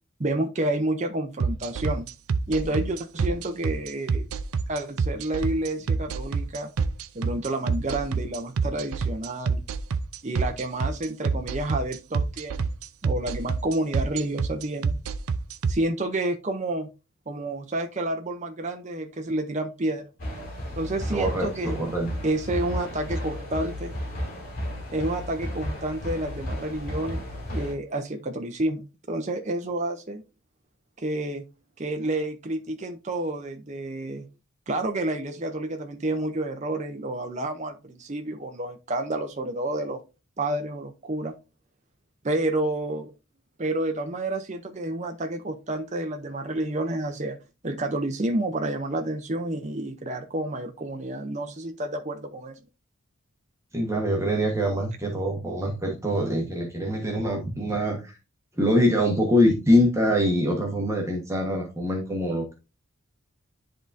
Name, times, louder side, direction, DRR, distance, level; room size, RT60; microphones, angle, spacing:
voice 1, 0.2-2.1 2.5-4.3 4.7-6.7 7.1-9.6 10.2-12.7 13.0-14.9 15.7-16.9 17.3-20.0 20.8-21.8 22.2-24.0 24.9-27.2 27.5-30.2 31.0-31.4 31.8-34.2 34.7-40.0 40.4-41.3 42.2-43.1 43.6-47.4 47.6-52.6, right 1 dB, 35° right, 5 dB, 0.6 m, -29 dB
sound 1, 1.4-15.7, right 5 dB, 85° right, 0.5 m, -26 dB
sound 2, 20.2-27.7, equal, 40° left, 3.4 m, -33 dB
voice 2, 21.1-22.1 53.7-58.2 58.6-62.5, equal, 15° right, -1 dB, 1.2 m, -24 dB
10.5 x 3.8 x 2.6 m, 0.29 s
head